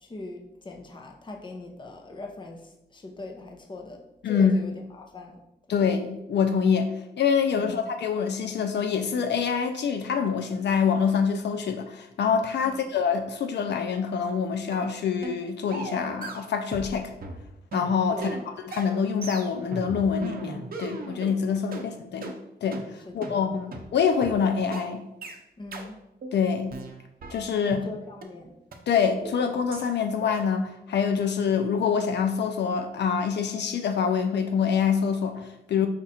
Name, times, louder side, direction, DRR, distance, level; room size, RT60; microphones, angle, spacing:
voice 1, 0.0-5.4 5.7-5.9 7.6-7.8 12.6-12.8 18.1-18.5 23.0-23.6 25.6-26.0 27.6-28.5, left 2 dB, 25° left, 2 dB, 0.6 m, -40 dB
voice 2, 4.2-4.6 5.7-17.1 17.7-18.3 18.6-22.3 22.6-22.8 23.1-25.0 26.3-26.7 27.3-27.8 28.9-35.9, left 6 dB, 80° left, 7 dB, 0.4 m, -25 dB
sound 1, 14.7-14.9 15.2-15.4 15.7-16.9 17.2-21.4 21.7-21.9 22.2-22.4 22.7-22.9 23.2-23.4 23.7-23.9 24.2-24.4 24.7-24.9 25.2-25.4 25.7-25.9 26.2-26.4 26.7-27.9 28.2-28.3 28.7-28.8 29.2-29.4 29.7-29.9 30.2-30.4, right 3 dB, 55° right, 0.6 m, -37 dB
5.1 x 2.4 x 4.1 m, 0.86 s
wide cardioid pair, 125°, 18 cm